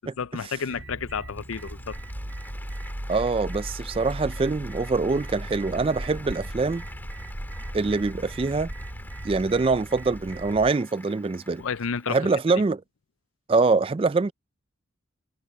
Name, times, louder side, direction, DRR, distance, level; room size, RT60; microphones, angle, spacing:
voice 1, 0.2-2.0 11.6-12.2, left 6 dB, 85° left, 0.5 m, -31 dB
sound 1, 0.7-10.7, right 1 dB, 65° right, 4.0 m, -37 dB
Applause, 0.9-12.5, left 2 dB, 10° left, 2.4 m, -48 dB
voice 2, 3.1-6.8 7.7-8.7 9.2-11.6 12.1-12.8 13.5-14.3, right 3 dB, 25° right, 0.3 m, -24 dB
head